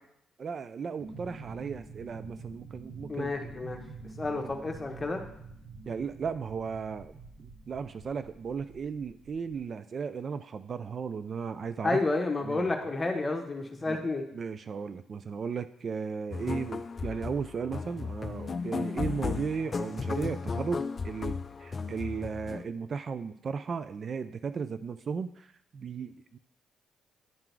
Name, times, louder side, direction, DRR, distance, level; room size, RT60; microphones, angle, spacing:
voice 1, 0.4-3.3 4.4-4.5 5.9-12.0 12.4-12.7 13.9-14.0 14.3-26.4, right 5 dB, 45° right, 12 dB, 0.3 m, -36 dB
sound 1, 1.0-9.6, right 4 dB, 80° right, 1.2 m, -47 dB
voice 2, 3.1-3.8 4.2-5.2 11.8-14.2, left 3 dB, 20° left, 3 dB, 1.2 m, -30 dB
sound 2, 16.3-22.6, left 5 dB, 35° left, 0.4 m, -35 dB
10.5 x 3.8 x 4.6 m, 0.75 s
cardioid pair, 90°, 0 cm